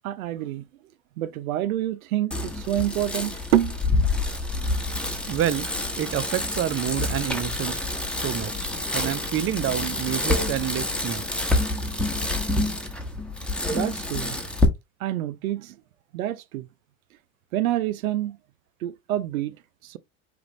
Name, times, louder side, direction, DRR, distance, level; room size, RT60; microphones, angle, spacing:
voice 1, 0.0-0.6 1.2-3.8 13.7-14.4 15.0-15.7 16.1-16.7 17.5-18.4 18.8-19.5 19.9-20.0, right 13 dB, 90° right, 0.6 m, -27 dB
Bicycle, 2.3-14.6, left 2 dB, ahead, 1.2 m, -27 dB
voice 2, 5.3-5.7 6.0-7.8 8.1-11.2, right 12 dB, 30° right, 0.6 m, -28 dB
4.9 x 3.4 x 3.1 m
hypercardioid pair, 95°, 41 cm